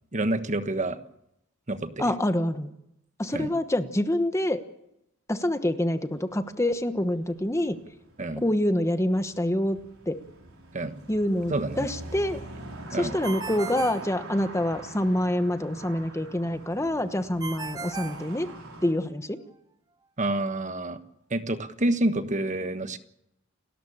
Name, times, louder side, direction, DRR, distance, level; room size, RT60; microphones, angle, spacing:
voice 1, 0.1-1.0 1.7-2.1 3.3-3.5 8.2-8.4 10.7-11.0 11.5-11.9 12.9-13.1 20.2-21.0 21.3-23.0, right 1 dB, 35° right, 10 dB, 1.4 m, -28 dB
voice 2, 2.0-2.7 3.2-4.6 5.3-7.8 8.4-9.8 10.1-10.2 11.1-12.4 12.9-18.5 18.8-19.4, left 1 dB, 15° left, 9 dB, 1.2 m, -26 dB
sound 1, 6.0-18.9, right 2 dB, 70° right, 5.9 m, -44 dB
Ringtone, 13.2-14.9 17.4-19.0, right 4 dB, 20° right, 0.8 m, -38 dB
29.5 x 13.5 x 8.7 m, 0.80 s
head